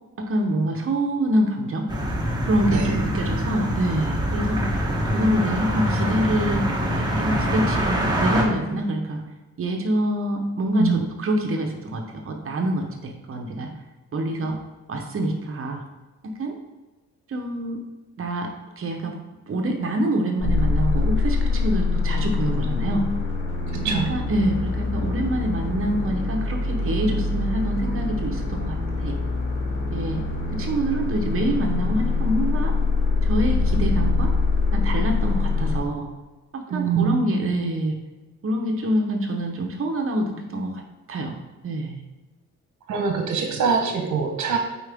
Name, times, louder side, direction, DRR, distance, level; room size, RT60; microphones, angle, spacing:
voice 1, 0.2-1.9 2.4-4.6 5.1-9.2 9.6-13.7 14.1-14.6 14.9-15.8 16.2-16.6 17.3-17.8 18.2-19.2 19.5-23.0 23.8-29.2 29.9-30.2 30.5-32.7 33.2-34.3 34.7-36.1 36.5-38.0 38.4-40.8 41.1-41.4 41.6-42.0, right 1 dB, 45° right, 3 dB, 1.0 m, -26 dB
sound 1, 1.9-8.4, equal, 15° right, 1.2 m, -24 dB
sound 2, 20.4-35.8, left 3 dB, 55° left, 2.3 m, -24 dB
voice 2, 23.7-24.1 36.7-37.2 42.9-44.6, right 6 dB, 75° right, 3 dB, 1.1 m, -24 dB
8.8 x 4.6 x 3.5 m, 1.2 s
wide cardioid pair, 165°, 29 cm